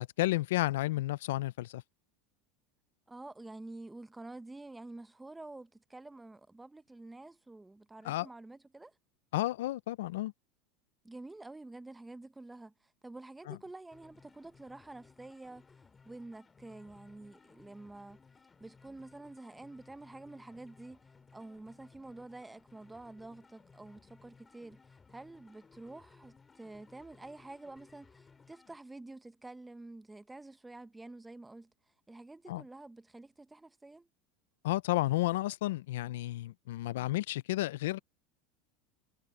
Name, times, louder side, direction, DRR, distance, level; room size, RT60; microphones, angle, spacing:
voice 1, 0.0-1.8 8.0-8.3 9.3-10.3 13.5-13.6 32.5-32.6 34.6-38.0, left 17 dB, 85° left, 0.4 m, -32 dB
voice 2, 3.1-8.9 11.0-15.6 16.0-18.2 18.6-31.7 32.1-34.1, right 2 dB, 10° right, 0.9 m, -49 dB
sound 1, 13.9-28.8, left 5 dB, 20° left, 2.3 m, -61 dB
supercardioid pair, 125°, 0 cm